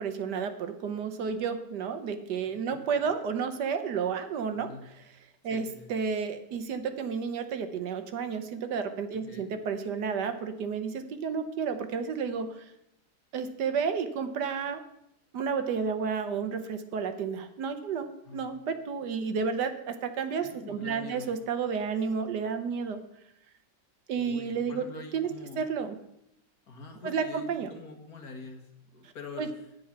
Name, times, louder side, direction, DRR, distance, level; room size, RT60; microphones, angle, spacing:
voice 1, 0.0-5.1 5.4-12.7 13.3-14.8 15.3-23.0 24.1-24.8 25.1-25.3 25.6-26.0 27.0-27.7 29.4-29.5, right 6 dB, 70° right, 9 dB, 1.4 m, -31 dB
voice 2, 5.5-5.9 9.3-9.5 18.3-18.4 20.4-21.3 24.1-25.6 26.7-28.7 28.9-29.5, left 3 dB, 55° left, 4 dB, 2.0 m, -44 dB
10.0 x 9.3 x 5.8 m, 0.80 s
omnidirectional pair, 2.0 m